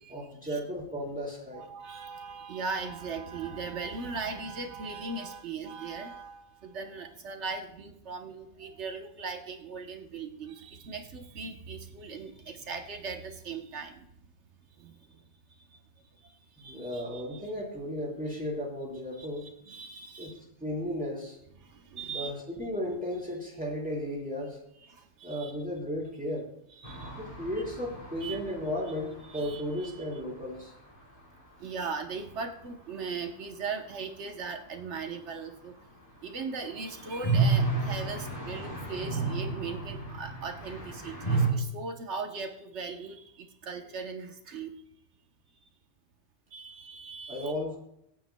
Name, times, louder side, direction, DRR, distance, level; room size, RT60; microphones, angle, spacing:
voice 1, 0.1-1.7 16.6-19.5 20.2-20.3 20.6-21.4 22.1-24.6 25.2-26.5 27.2-30.7 47.3-47.8, equal, 5° right, -4 dB, 4.1 m, -35 dB
voice 2, 1.5-14.1 14.8-15.2 15.5-15.8 16.2-17.5 19.2-20.4 21.6-22.4 24.8-25.5 26.7-27.2 28.2-28.4 29.3-29.9 31.6-35.8 36.2-44.7 46.5-47.5, right 4 dB, 90° right, 4 dB, 1.3 m, -39 dB
sound 1, 26.8-30.6 30.9-31.0 31.2-31.3 36.3-41.5, right 4 dB, 30° left, 4.1 m, -32 dB
24.5 x 9.0 x 2.2 m, 0.77 s
omnidirectional pair, 1.1 m